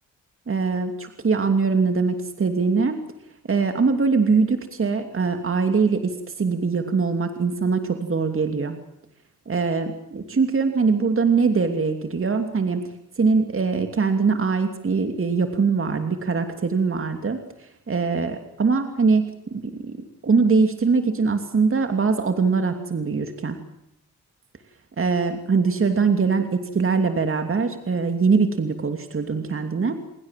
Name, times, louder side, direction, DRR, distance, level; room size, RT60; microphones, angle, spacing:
voice 1, 0.5-3.0 3.5-8.8 9.5-12.8 13.2-19.2 19.5-20.0 20.2-23.6 25.0-29.9, right 4 dB, 40° right, 6 dB, 2.8 m, -22 dB
29.0 x 21.5 x 7.6 m, 0.82 s
cardioid pair, 75°, 33 cm